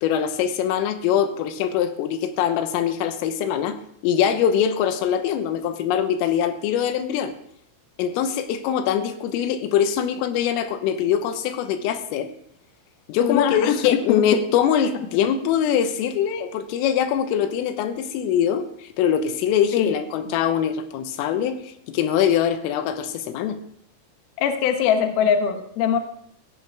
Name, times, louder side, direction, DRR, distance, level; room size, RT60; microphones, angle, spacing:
voice 1, 0.0-3.8 4.0-7.3 8.0-12.3 13.1-21.6 21.9-23.6, left 9 dB, 85° left, 9 dB, 3.6 m, -23 dB
voice 2, 13.2-14.4 19.7-20.0 24.4-26.0, left 8 dB, 65° left, 6 dB, 2.6 m, -21 dB
16.5 x 15.0 x 3.4 m, 0.69 s
omnidirectional pair, 5.7 m